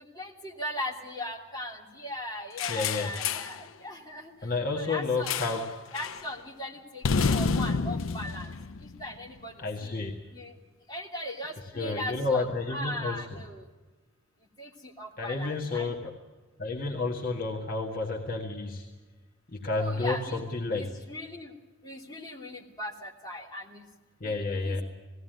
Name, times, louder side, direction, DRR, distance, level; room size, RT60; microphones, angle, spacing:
voice 1, 0.0-4.3 4.7-5.3 5.9-8.5 9.0-9.5 9.8-9.9 10.3-10.5 10.9-12.4 12.7-13.6 14.6-14.7 15.0-15.9 19.8-20.4 20.8-21.5 21.8-23.8 24.2-24.3 24.6-24.8, left 1 dB, 20° left, -1 dB, 3.0 m, -38 dB
sound 1, 2.6-3.6 5.3-5.7 5.9-6.2 7.0-9.4, left 5 dB, 75° left, 0.6 m, -29 dB
voice 2, 2.7-3.2 4.4-5.8 9.6-10.1 11.6-13.4 15.2-16.2 16.6-18.9 19.5-20.9 24.2-24.8, left 3 dB, 45° left, -1 dB, 1.9 m, -31 dB
20.0 x 16.5 x 9.2 m, 1.3 s
head